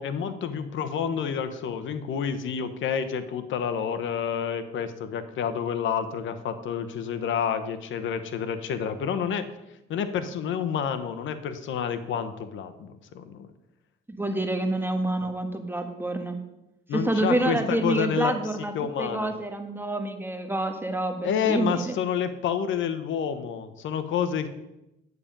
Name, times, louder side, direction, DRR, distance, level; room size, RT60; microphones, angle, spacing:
voice 1, 0.0-9.4 9.9-13.5 16.9-18.3 18.7-19.3 21.2-24.5, left 7 dB, 75° left, 10 dB, 1.1 m, -29 dB
voice 2, 14.1-16.4 16.9-18.7 19.0-22.0, right 1 dB, 10° right, 5 dB, 1.4 m, -27 dB
9.7 x 8.9 x 5.4 m, 0.91 s
cardioid pair, 90°, 20 cm